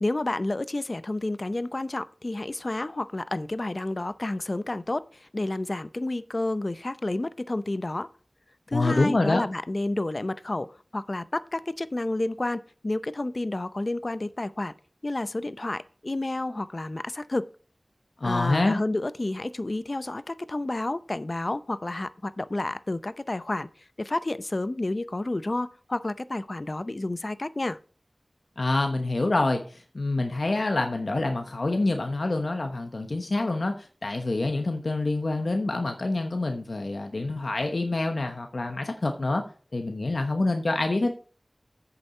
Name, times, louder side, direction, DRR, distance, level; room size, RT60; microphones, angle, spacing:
voice 1, 0.0-8.1 8.7-14.7 15.0-17.5 18.2-23.7 24.0-27.8, left 2 dB, 50° left, 0.5 m, -30 dB
voice 2, 8.7-9.4 18.2-18.8 28.6-39.4 39.7-41.1, left 2 dB, 75° left, 1.0 m, -26 dB
8.1 x 6.9 x 4.3 m
wide cardioid pair, 50°, 0 cm